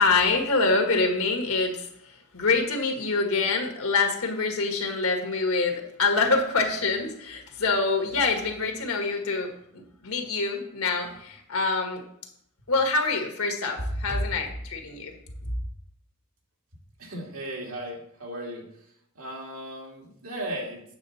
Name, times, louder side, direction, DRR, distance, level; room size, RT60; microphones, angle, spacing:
voice 1, 0.0-1.9 2.3-12.0 12.7-15.1, left 3 dB, 80° left, 3 dB, 1.6 m, -25 dB
voice 2, 17.0-20.8, right 1 dB, 80° right, -1 dB, 2.3 m, -37 dB
8.8 x 6.6 x 4.2 m, 0.71 s
head